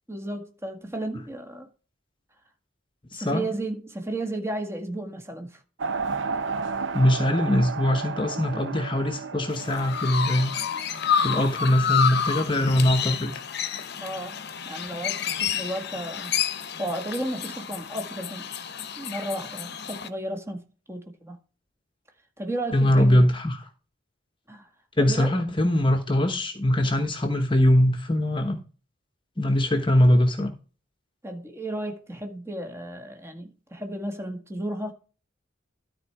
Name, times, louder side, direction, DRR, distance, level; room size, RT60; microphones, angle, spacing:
voice 1, 0.1-1.7 3.1-5.6 14.0-14.4 14.7-16.3 16.8-18.5 19.0-21.4 22.4-23.3 24.5-24.7 25.0-25.4 31.2-34.9, right 1 dB, 15° right, 1.8 m, -33 dB
voice 2, 3.1-3.5 6.9-10.5 10.8-10.9 11.2-13.3 22.7-23.6 25.0-28.6 29.4-30.5, left 1 dB, 25° left, 1.1 m, -22 dB
sound 1, 5.8-11.7, right 5 dB, 65° right, 0.8 m, -33 dB
Chirp tweet, 9.5-20.1, left 8 dB, 55° left, 0.9 m, -29 dB
12.5 x 4.4 x 4.8 m
head